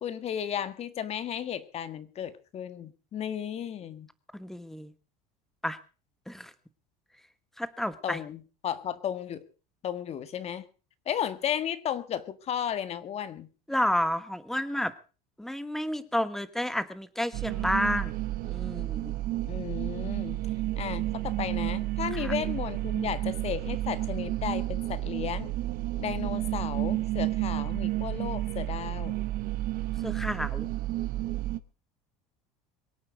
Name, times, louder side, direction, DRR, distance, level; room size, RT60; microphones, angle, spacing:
voice 1, 0.0-4.1 8.0-9.4 9.8-10.6 11.1-13.5 19.4-20.4 20.8-25.5 26.0-29.2, left 9 dB, 30° left, 13 dB, 1.7 m, -34 dB
voice 2, 4.3-4.9 5.6-5.8 6.3-6.5 7.6-8.2 13.7-14.9 15.4-18.1 18.4-19.2 22.1-22.3 30.0-30.7, left 1 dB, ahead, 13 dB, 1.2 m, -30 dB
sound 1, 17.3-31.6, right 16 dB, 45° right, 1.1 m, -31 dB
23.5 x 8.7 x 6.2 m, 0.36 s
cardioid pair, 145°, 20 cm